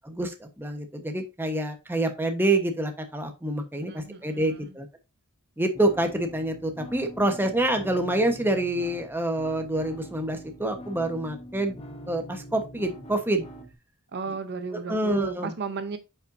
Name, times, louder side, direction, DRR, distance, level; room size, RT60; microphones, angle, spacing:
voice 1, 0.0-4.9 5.6-11.8 12.1-13.5 14.9-15.5, right 1 dB, 10° right, 1.1 m, -27 dB
voice 2, 3.9-4.8 14.1-16.0, right 4 dB, 50° right, 0.7 m, -34 dB
sound 1, 5.7-13.7, right 1 dB, 25° left, 1.1 m, -44 dB
8.7 x 5.7 x 2.6 m
head